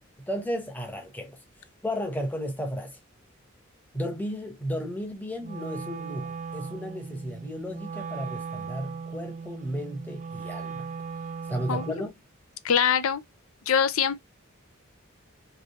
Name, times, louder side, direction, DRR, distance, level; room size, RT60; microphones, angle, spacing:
voice 1, 0.2-1.4 1.8-3.0 3.9-10.9 11.5-12.1, equal, 10° left, 0.9 m, -34 dB
Wind instrument woodwind instrument, 5.4-12.1, right 5 dB, 35° right, 0.3 m, -38 dB
voice 2, 11.7-12.0 12.6-13.2 13.7-14.2, left 7 dB, 80° left, 0.5 m, -23 dB
3.3 x 3.0 x 2.8 m
head